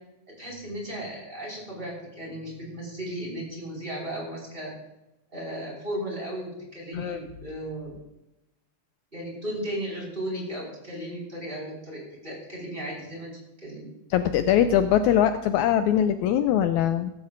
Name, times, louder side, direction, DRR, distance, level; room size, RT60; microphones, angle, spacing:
voice 1, 0.4-4.7 5.3-8.0 9.1-13.9, right 1 dB, 15° right, -4 dB, 5.1 m, -35 dB
voice 2, 14.1-17.1, left 10 dB, 80° left, 9 dB, 1.8 m, -22 dB
16.5 x 15.0 x 2.6 m, 0.93 s
omnidirectional pair, 3.6 m